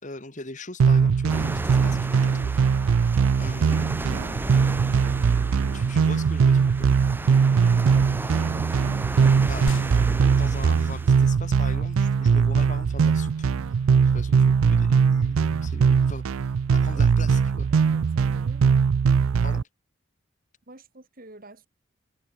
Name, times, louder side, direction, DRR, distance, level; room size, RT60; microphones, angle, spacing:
voice 1, 0.0-3.1 3.4-3.9 5.7-7.0 9.4-9.7 10.3-17.7 19.4-19.7, left 2 dB, 35° left, 2.6 m, -41 dB
sound 1, 0.8-19.6, right 6 dB, 80° right, 0.4 m, -21 dB
sound 2, 1.3-11.2, right 1 dB, 10° right, 0.5 m, -35 dB
voice 2, 8.3-8.7 16.7-17.1 17.7-18.8 20.7-21.7, right 2 dB, 45° right, 2.2 m, -48 dB
sound 3, 12.8-19.6, left 1 dB, 70° left, 2.5 m, -44 dB
head